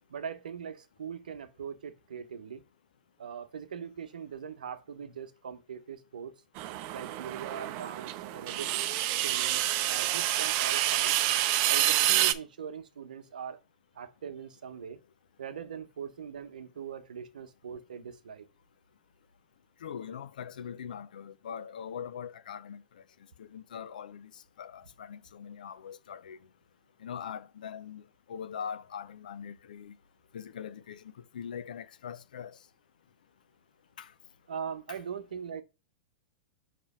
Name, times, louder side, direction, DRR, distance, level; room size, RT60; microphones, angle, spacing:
voice 1, 0.1-2.6 3.2-6.3 6.9-8.7 9.2-11.1 11.7-13.6 13.9-15.0 15.4-18.5 34.5-35.6, right 7 dB, 90° right, 0.8 m, -41 dB
sound 1, 6.6-12.3, right 14 dB, 50° right, 0.5 m, -28 dB
voice 2, 19.8-23.0 23.4-26.4 27.0-30.0 30.3-32.6 34.0-34.1 34.9-35.0, left 8 dB, 85° left, 0.5 m, -42 dB
5.9 x 3.0 x 5.4 m
hypercardioid pair, 120°, 4 cm